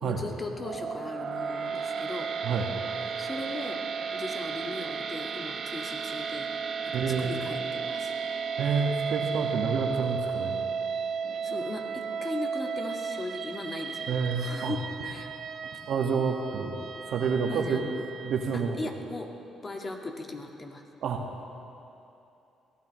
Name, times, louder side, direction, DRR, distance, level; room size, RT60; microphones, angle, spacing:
voice 1, 0.0-2.3 3.2-8.1 11.4-15.3 17.5-18.1 18.8-19.3 19.6-20.8, left 2 dB, 30° left, 2 dB, 1.7 m, -38 dB
sound 1, 0.6-18.8, right 6 dB, 60° right, 0.7 m, -34 dB
voice 2, 6.9-7.3 8.6-10.6 14.1-14.7 15.9-16.7 17.1-17.8 18.2-18.8 21.0-21.2, right 5 dB, 75° right, 2 dB, 1.6 m, -28 dB
22.5 x 16.5 x 3.1 m, 2.8 s
cardioid pair, 90°, 0 cm